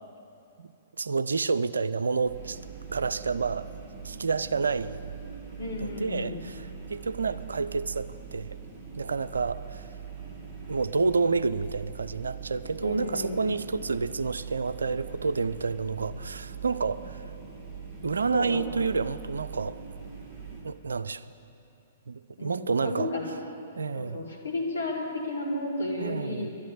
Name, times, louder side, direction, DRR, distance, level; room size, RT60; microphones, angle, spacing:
voice 1, 1.0-2.6 2.9-3.7 4.0-5.1 5.8-8.6 9.0-9.9 10.7-17.3 18.0-19.8 20.6-21.3 22.1-23.1 23.8-24.2 26.0-26.5, right 4 dB, 70° right, 14 dB, 0.4 m, -29 dB
sound 1, 2.2-20.6, right 6 dB, 10° right, 2.8 m, -42 dB
voice 2, 5.6-6.4 12.8-13.5 18.3-18.8 22.4-23.2 23.9-26.5, left 2 dB, 70° left, 0 dB, 2.6 m, -33 dB
11.5 x 11.5 x 8.5 m, 2.7 s
figure-of-eight pair, 115°, 0 cm